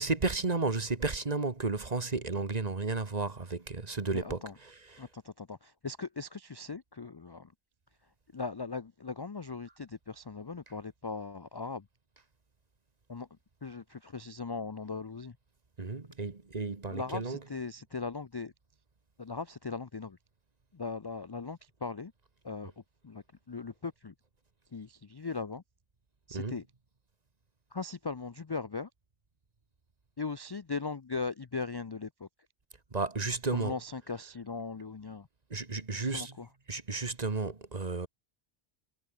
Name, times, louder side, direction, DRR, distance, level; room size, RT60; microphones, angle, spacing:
voice 1, 0.0-5.1 15.8-17.4 26.3-26.5 32.9-33.7 35.5-36.3 36.7-38.1, right 3 dB, 35° right, 1.6 m, -33 dB
voice 2, 4.1-4.5 5.0-7.5 8.3-11.8 13.1-13.3 13.6-15.4 16.9-18.5 19.2-20.2 20.7-22.1 22.4-22.7 23.0-24.1 24.7-25.6 26.3-26.6 27.7-28.9 30.2-32.3 33.5-35.3 35.9-36.5, left 4 dB, 30° left, 0.4 m, -39 dB
omnidirectional pair, 1.1 m